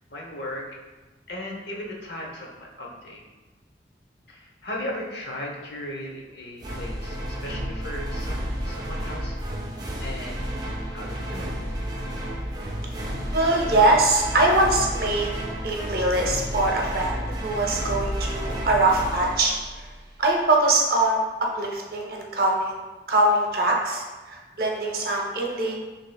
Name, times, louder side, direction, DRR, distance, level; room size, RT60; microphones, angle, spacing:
voice 1, 0.1-0.6 1.3-3.2 4.3-9.4 10.0-10.4 10.9-11.5, left 1 dB, 70° left, -2 dB, 0.8 m, -36 dB
sound 1, 6.6-20.2, equal, 20° right, 0.5 m, -31 dB
voice 2, 13.2-15.3 15.6-19.5 20.2-22.7 23.1-25.8, right 2 dB, 55° right, 0 dB, 0.7 m, -22 dB
6.4 x 2.9 x 2.3 m, 1.2 s
head